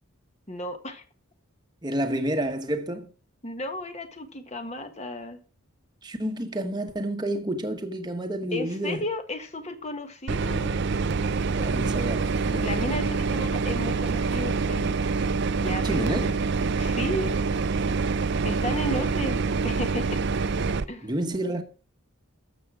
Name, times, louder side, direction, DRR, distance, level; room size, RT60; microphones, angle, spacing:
voice 1, 0.5-1.0 3.4-5.4 8.5-10.8 12.6-15.0 15.6-16.4 16.8-17.3 18.4-20.2 20.9-21.1, left 1 dB, 30° left, 1.4 m, -34 dB
voice 2, 1.8-3.1 6.0-9.0 11.5-12.9 15.7-16.3 18.9-19.0 21.0-21.6, right 1 dB, 20° right, 1.2 m, -30 dB
sound 1, 10.3-20.8, right 4 dB, 50° right, 0.6 m, -26 dB
12.5 x 7.5 x 4.8 m
head